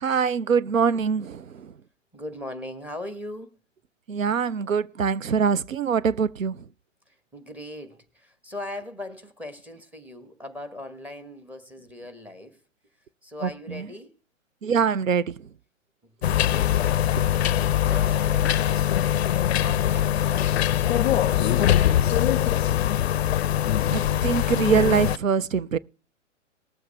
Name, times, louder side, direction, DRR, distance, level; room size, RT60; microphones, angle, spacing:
voice 1, 0.0-1.7 4.1-6.6 13.4-13.8 14.6-15.4 17.2-17.3 23.9-25.8, right 6 dB, 85° right, 0.6 m, -24 dB
voice 2, 2.1-3.5 7.1-12.6 13.2-14.1 17.4-18.9 19.6-23.1, left 1 dB, 5° right, 1.1 m, -40 dB
sound 1, 16.2-25.2, left 11 dB, 55° left, 0.5 m, -22 dB
20.0 x 7.7 x 3.4 m
figure-of-eight pair, 120°, 38 cm